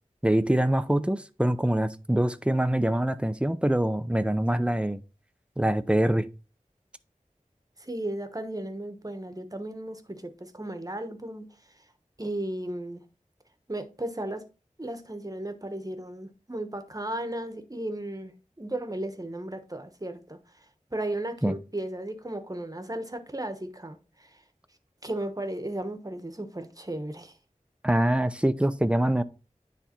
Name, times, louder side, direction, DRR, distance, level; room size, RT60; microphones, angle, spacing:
voice 1, 0.2-5.0 5.6-6.3 21.4-21.6 27.8-29.2, right 1 dB, 10° right, 0.6 m, -24 dB
voice 2, 7.8-11.5 12.2-13.0 13.7-14.4 14.8-20.6 20.9-24.4 25.0-27.3, right 1 dB, 25° right, 1.1 m, -35 dB
9.8 x 3.4 x 4.4 m
wide cardioid pair, 45°, 13 cm